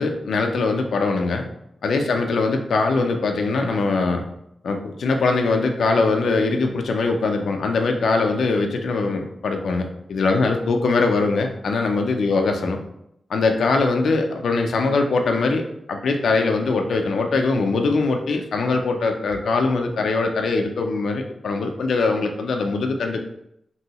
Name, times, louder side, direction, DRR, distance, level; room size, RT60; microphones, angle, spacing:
voice 1, 0.0-1.5 1.8-4.3 4.6-12.8 13.3-15.6 15.9-23.2, left 3 dB, 85° left, 4 dB, 0.3 m, -22 dB
3.0 x 2.7 x 2.8 m, 0.78 s
wide cardioid pair, 140°, 0 cm